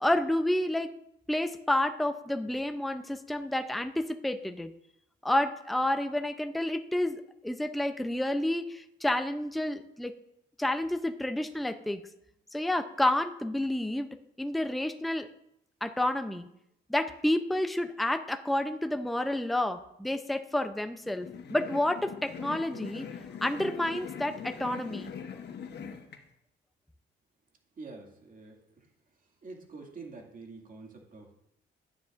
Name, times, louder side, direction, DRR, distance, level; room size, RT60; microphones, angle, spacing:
voice 1, 0.0-0.9 1.3-4.7 5.2-10.1 10.6-12.0 12.5-14.1 14.4-15.3 15.8-16.5 16.9-23.1 23.4-25.1, left 1 dB, ahead, 8 dB, 0.6 m, -30 dB
sound 1, 21.0-26.2, left 7 dB, 60° left, 1.1 m, -42 dB
voice 2, 27.8-28.6 29.4-31.3, right 3 dB, 45° right, 1 dB, 2.2 m, -46 dB
12.0 x 9.5 x 2.5 m, 0.78 s
cardioid pair, 90°, 20 cm